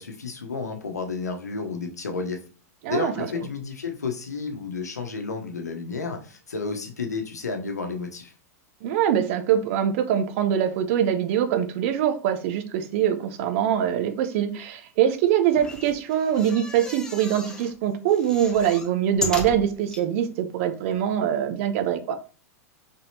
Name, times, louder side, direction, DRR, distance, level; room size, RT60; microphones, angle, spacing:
voice 1, 0.0-2.4 2.9-8.3, left 4 dB, 90° left, 0.8 m, -31 dB
voice 2, 2.8-3.3 8.8-22.2, right 9 dB, 55° right, 0.7 m, -23 dB
sound 1, 15.5-17.7 18.1-20.0 20.6-20.7 20.9-21.0, left 2 dB, 5° left, 0.8 m, -35 dB
4.1 x 3.5 x 2.7 m
hypercardioid pair, 100°, 9 cm